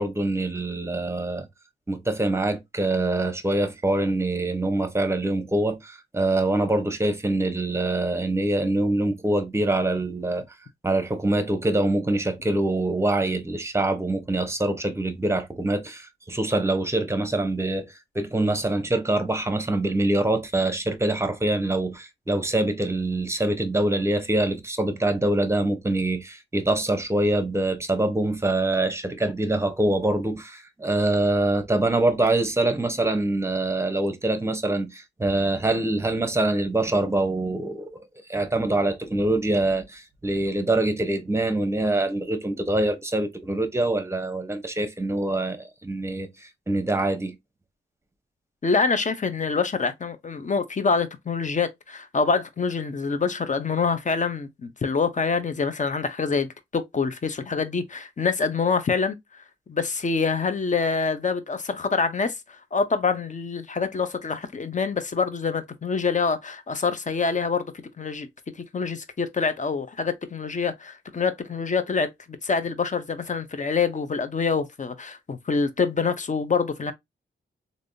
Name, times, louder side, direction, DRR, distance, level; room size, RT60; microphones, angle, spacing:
voice 1, 0.0-1.5 1.9-10.4 10.8-47.3, right 2 dB, 15° right, 0.8 m, -24 dB
voice 2, 48.6-59.2 59.7-68.3 68.6-72.1 72.4-76.9, left 5 dB, 40° left, 0.7 m, -26 dB
3.3 x 2.6 x 2.6 m
cardioid pair, 70°, 19 cm